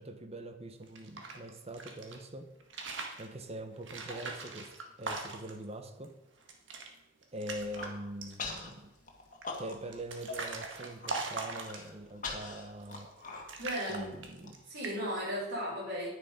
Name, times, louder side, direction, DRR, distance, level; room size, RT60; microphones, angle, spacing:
voice 1, 0.0-2.5 3.2-6.2 7.3-8.9 9.6-13.1 13.9-14.6, right 1 dB, 30° right, 1.1 m, -43 dB
sound 1, 0.8-2.2 2.6-3.3 3.8-5.6 6.0-6.1 6.4-6.9 7.2-7.9 8.2-8.7 9.4-12.1 12.8-13.2 13.5-14.6 14.8-15.2, right 3 dB, 70° right, 1.8 m, -41 dB
Human voice, 7.5-7.9 8.4-8.7 9.1-10.0 10.3-10.4 10.8-11.1 11.6-14.5, left 4 dB, 40° left, 2.1 m, -42 dB
voice 2, 13.6-14.1 14.7-16.1, equal, 90° right, 4.9 m, -35 dB
10.5 x 9.8 x 5.2 m
head